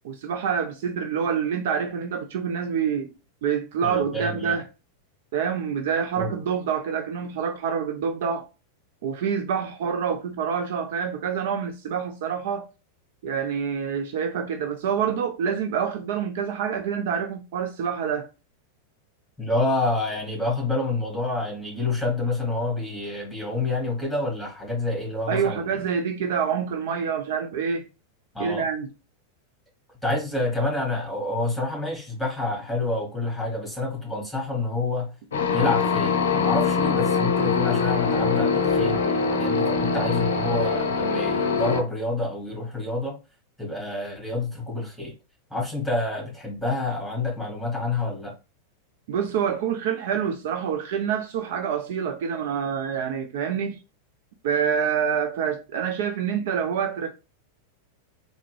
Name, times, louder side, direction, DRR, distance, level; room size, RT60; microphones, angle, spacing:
voice 1, 0.0-3.1 3.4-4.6 5.3-8.5 9.0-12.7 13.2-18.3 25.3-27.9 28.4-28.9 49.1-53.8 54.4-57.1, right 7 dB, 55° right, 0.4 m, -27 dB
voice 2, 3.8-4.6 6.2-6.3 19.4-25.6 28.3-28.6 30.0-35.1 35.5-43.2 43.6-45.1 45.5-48.3, left 2 dB, ahead, 1.8 m, -28 dB
sound 1, 35.3-41.8, left 5 dB, 65° left, 0.5 m, -23 dB
3.5 x 2.6 x 3.2 m
figure-of-eight pair, 90°, 0 cm